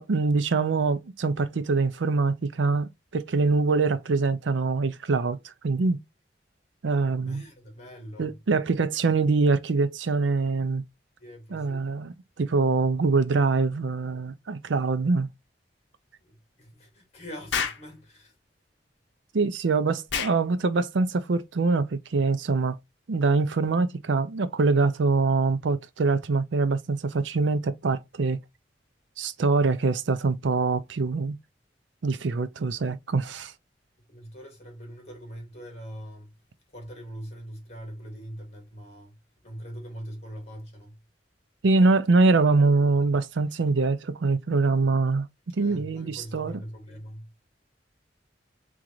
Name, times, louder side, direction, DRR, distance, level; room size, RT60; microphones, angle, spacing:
voice 1, 0.0-6.0 6.8-7.4 8.2-10.8 11.5-15.3 19.3-22.8 23.1-28.4 29.2-31.4 32.0-33.5 41.6-45.3 45.6-46.6, right 3 dB, 90° right, 0.5 m, -24 dB
voice 2, 7.2-8.3 11.2-11.9 16.2-16.3 16.6-18.3 34.1-36.3 36.7-39.1 39.4-40.9 45.6-47.3, equal, 35° left, 2.0 m, -42 dB
Explosion, 17.5-17.9 20.1-20.4, left 7 dB, 75° left, 0.8 m, -28 dB
3.8 x 3.7 x 3.0 m
head